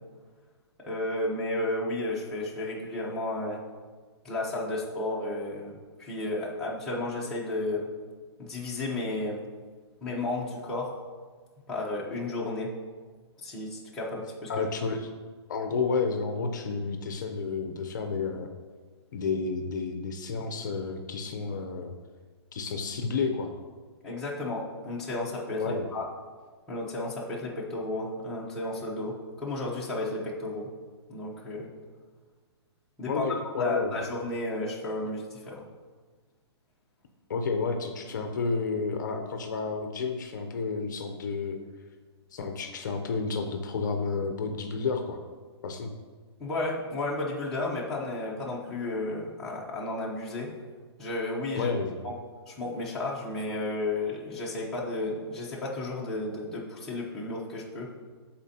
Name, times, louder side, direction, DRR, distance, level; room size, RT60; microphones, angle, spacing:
voice 1, 0.9-3.6 4.2-7.9 8.4-9.4 10.0-10.9 11.7-12.7 13.4-14.6 24.0-26.0 26.7-30.7 31.1-31.7 33.0-33.3 33.6-35.6 46.4-50.5 51.0-51.7 52.0-52.1 52.5-57.9, left 2 dB, 5° left, -7 dB, 0.7 m, -33 dB
voice 2, 14.5-15.1 15.5-18.5 19.1-21.9 22.5-23.5 25.6-25.9 33.1-34.1 37.3-41.6 42.3-45.2 45.6-45.9 51.5-52.0, left 4 dB, 45° left, 5 dB, 0.6 m, -31 dB
12.5 x 4.3 x 2.8 m, 1.5 s
hypercardioid pair, 175°, 14 cm